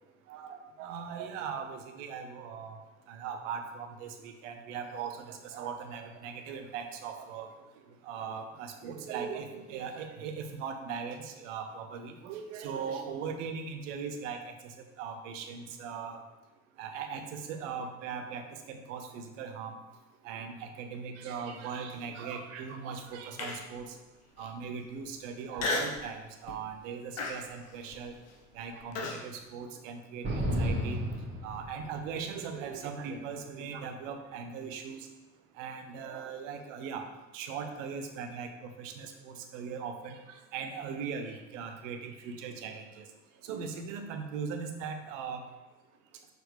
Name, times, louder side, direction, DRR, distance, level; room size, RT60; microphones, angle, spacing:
voice 1, 0.3-2.8 3.1-7.5 8.0-14.4 14.6-14.7 15.0-16.2 16.8-19.8 20.2-23.9 24.4-28.1 28.5-31.0 31.4-35.0 35.6-37.0 37.3-40.2 40.5-43.0 43.4-45.4, right 6 dB, 55° right, 5 dB, 0.9 m, -39 dB
Human voice, 23.4-23.8 24.4-24.5 25.6-26.0 26.5-26.8 27.2-29.2, left 2 dB, 35° left, 0.9 m, -34 dB
sound 1, 30.2-32.2, equal, 25° right, 1.7 m, -32 dB
6.3 x 4.5 x 3.3 m, 1.1 s
figure-of-eight pair, 65°, 45 cm